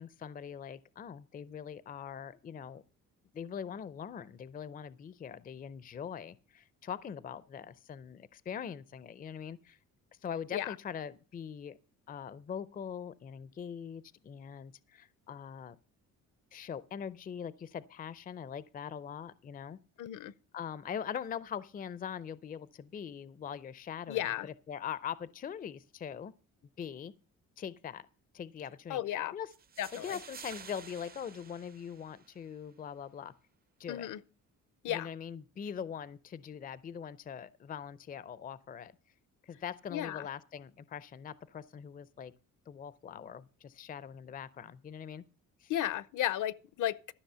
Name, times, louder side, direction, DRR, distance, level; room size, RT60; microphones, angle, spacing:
voice 1, 0.0-2.8 3.3-9.8 10.2-11.8 12.1-15.8 16.5-19.8 20.5-26.3 26.8-27.1 27.6-28.1 28.3-29.5 29.9-33.3 33.8-34.2 34.9-38.9 39.4-42.3 42.7-45.2 45.6-45.7, left 8 dB, 25° left, 0.5 m, -42 dB
voice 2, 20.0-20.3 24.1-24.5 28.9-29.3 29.8-30.2 33.9-34.2 34.8-35.1 39.9-40.3 45.7-47.1, left 12 dB, 65° left, 0.7 m, -34 dB
sound 1, 29.5-32.5, right 7 dB, 30° right, 0.5 m, -51 dB
13.0 x 6.1 x 6.7 m
cardioid pair, 135°, 33 cm